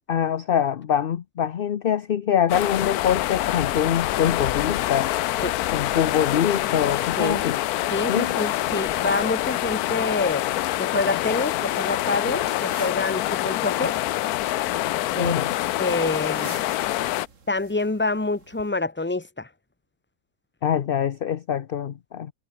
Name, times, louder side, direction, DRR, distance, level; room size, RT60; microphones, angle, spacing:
voice 1, 0.1-5.1 5.7-7.6 8.1-8.4 15.2-15.5 20.6-22.3, left 9 dB, 50° left, 0.7 m, -24 dB
sound 1, 2.5-17.3, left 15 dB, 90° left, 1.1 m, -26 dB
sound 2, 7.8-18.7, right 4 dB, 55° right, 2.5 m, -49 dB
voice 2, 7.9-10.5 10.8-14.0 15.1-15.4 15.8-16.5 17.5-19.5, left 3 dB, 10° left, 1.2 m, -27 dB
omnidirectional pair, 1.5 m